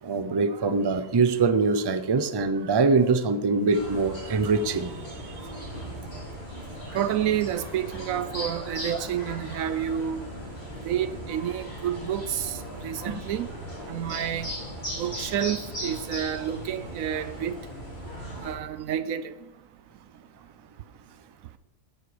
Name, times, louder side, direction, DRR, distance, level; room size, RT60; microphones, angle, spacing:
voice 1, 0.0-5.3 8.9-9.0 13.1-13.2, right 4 dB, 40° right, 0.3 m, -24 dB
sound 1, 3.7-18.5, equal, 40° left, 5.5 m, -38 dB
Laughter, 6.9-10.9, left 1 dB, 70° left, 3.3 m, -48 dB
voice 2, 6.9-10.3 10.8-13.5 13.9-14.5 15.0-17.6 18.4-19.3, right 10 dB, 70° right, 0.9 m, -29 dB
13.0 x 9.4 x 5.1 m
omnidirectional pair, 1.6 m